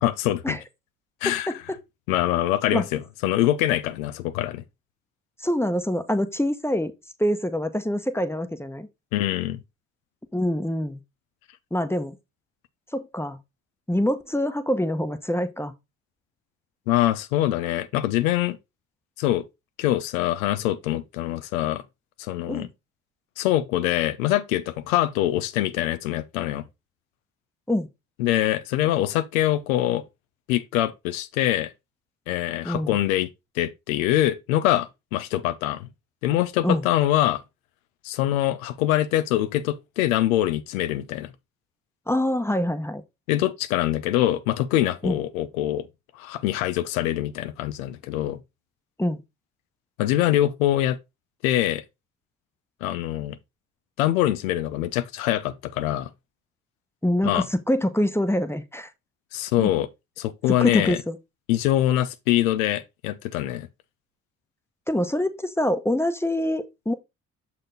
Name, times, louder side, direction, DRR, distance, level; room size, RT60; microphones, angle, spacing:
voice 1, 0.0-0.6 1.2-1.5 2.1-4.6 9.1-9.6 16.9-18.6 19.2-19.4 19.8-21.8 22.2-22.7 23.4-26.6 28.2-30.0 30.5-31.7 32.3-33.3 33.6-35.9 36.2-37.4 38.0-41.3 43.3-45.8 46.2-48.4 50.0-51.0 51.4-51.8 52.8-53.4 54.0-56.1 57.2-57.5 59.3-59.9 60.2-61.0 61.5-63.7, left 13 dB, 85° left, 0.6 m, -24 dB
voice 2, 5.4-6.9 7.2-8.9 10.3-11.0 11.7-12.2 12.9-13.4 13.9-15.7 22.5-22.7 27.7-27.9 32.6-33.0 36.6-36.9 42.1-43.0 45.0-45.2 49.0-49.2 57.0-58.9 59.6-59.7 60.6-61.2 64.9-66.9, left 1 dB, 5° left, 1.0 m, -25 dB
6.4 x 4.2 x 3.9 m
hypercardioid pair, 50°, 40 cm